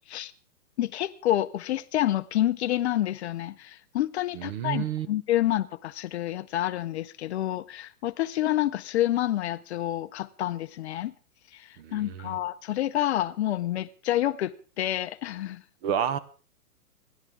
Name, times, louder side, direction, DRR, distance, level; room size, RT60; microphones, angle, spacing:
voice 1, 0.8-11.1 11.5-15.6, left 13 dB, 45° left, 0.7 m, -28 dB
voice 2, 4.3-5.1 11.8-12.4 15.8-16.2, right 9 dB, 40° right, 1.2 m, -30 dB
28.0 x 11.5 x 3.7 m
hypercardioid pair, 135°, 46 cm